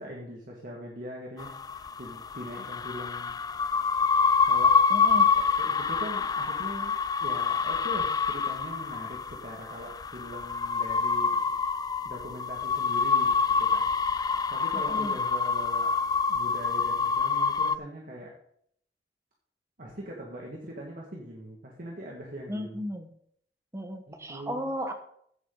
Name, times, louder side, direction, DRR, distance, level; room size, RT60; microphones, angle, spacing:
voice 1, 0.0-1.5 2.0-3.4 4.4-4.8 5.4-11.4 12.0-15.9 16.3-18.3 19.8-22.8 24.1-24.6, equal, 50° right, -2 dB, 2.0 m, -41 dB
sound 1, 1.4-17.8, left 5 dB, 20° left, 0.3 m, -26 dB
voice 2, 4.9-5.3 14.7-15.2 22.5-23.1 23.7-24.9, equal, 15° right, 6 dB, 1.2 m, -35 dB
15.0 x 7.8 x 4.0 m, 0.66 s
head